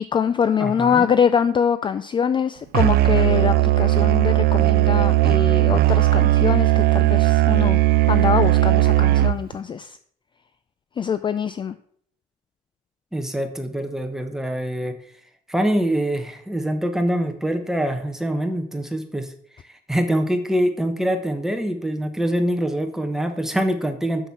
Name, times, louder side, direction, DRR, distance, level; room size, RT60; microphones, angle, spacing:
voice 1, 0.0-7.8 8.1-10.0 11.0-11.8, left 7 dB, 30° left, 13 dB, 0.4 m, -23 dB
voice 2, 0.6-1.1 13.1-14.9 15.5-19.3 19.7-24.3, right 1 dB, 5° right, 6 dB, 1.1 m, -24 dB
Musical instrument, 2.7-9.5, right 16 dB, 65° right, 0.4 m, -17 dB
6.6 x 6.5 x 5.7 m, 0.63 s
cardioid pair, 110°, 17 cm